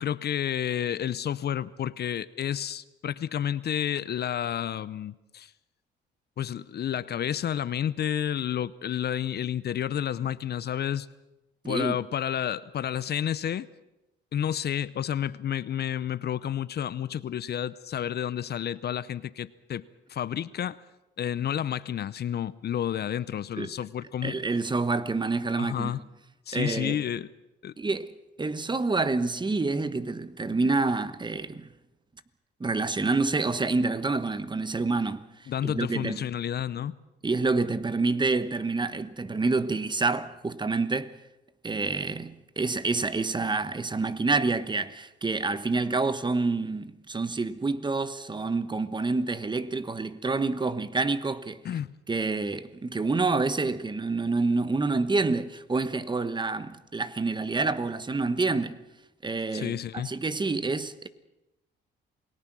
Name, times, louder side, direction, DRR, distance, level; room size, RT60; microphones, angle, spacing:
voice 1, 0.0-5.5 6.4-11.1 11.6-13.7 14.3-20.8 21.2-24.4 25.6-26.0 26.5-27.3 27.6-27.7 35.5-36.9 51.6-52.0 59.5-60.1, left 10 dB, 55° left, 0.7 m, -30 dB
voice 2, 11.6-12.0 23.6-23.7 24.2-25.9 26.5-27.0 27.8-28.1 28.4-31.7 32.6-35.2 35.6-36.2 37.2-41.1 41.6-51.6 52.1-58.8 59.2-61.1, right 3 dB, 20° right, 1.2 m, -28 dB
28.0 x 18.5 x 6.2 m
cardioid pair, 90°, 20 cm